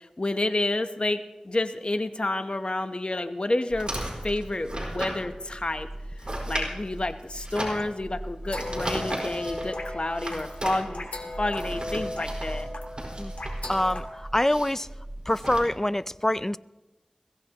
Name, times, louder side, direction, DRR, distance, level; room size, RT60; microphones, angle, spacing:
voice 1, 0.0-3.9 4.2-5.9 6.2-11.1 11.4-12.7, left 2 dB, 50° left, 0.9 m, -29 dB
sound 1, 3.7-15.6, right 1 dB, 40° right, 4.7 m, -35 dB
sound 2, 8.4-14.0, left 1 dB, 85° left, 2.3 m, -37 dB
voice 2, 13.7-14.9 15.3-16.6, left 1 dB, 20° left, 0.4 m, -25 dB
22.0 x 16.0 x 3.0 m
wide cardioid pair, 50°, 2 cm